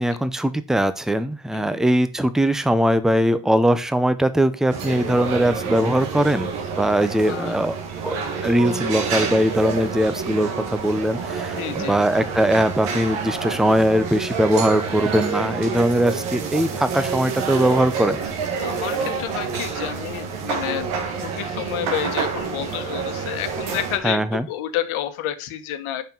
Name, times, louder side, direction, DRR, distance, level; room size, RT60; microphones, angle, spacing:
voice 1, 0.0-6.5 6.8-7.7 8.0-8.2 8.4-18.2 24.0-24.4, equal, ahead, 12 dB, 0.6 m, -20 dB
sound 1, 4.7-24.0, right 5 dB, 80° right, 1.9 m, -28 dB
voice 2, 7.2-7.6 8.7-8.8 9.0-9.2 11.5-12.2 18.6-20.9 21.2-26.0, left 11 dB, 75° left, 10 dB, 1.3 m, -30 dB
7.2 x 5.7 x 5.3 m, 0.32 s
cardioid pair, 120°, 49 cm